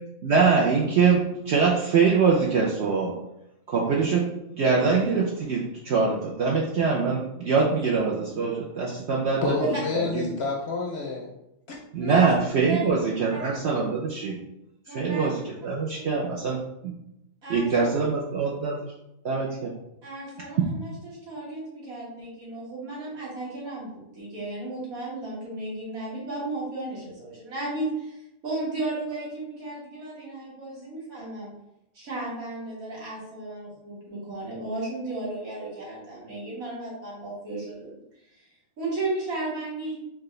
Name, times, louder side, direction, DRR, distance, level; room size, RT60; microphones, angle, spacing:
voice 1, 0.2-3.1 3.7-4.2 4.6-9.4 9.9-10.1 11.9-14.4 14.9-15.3 15.6-16.6 17.5-18.7 19.2-19.7 20.6-20.7, right 5 dB, 60° right, 0.8 m, -23 dB
voice 2, 9.4-11.3 11.7-11.8, left 3 dB, 60° left, 0.7 m, -28 dB
voice 3, 12.0-12.3 12.7-12.9 13.3-13.4 14.9-15.3 17.4-18.2 20.0-31.5 31.9-37.9 38.3-38.5 38.8-40.0, right 2 dB, 80° right, 2.0 m, -34 dB
4.6 x 2.4 x 3.1 m
omnidirectional pair, 1.5 m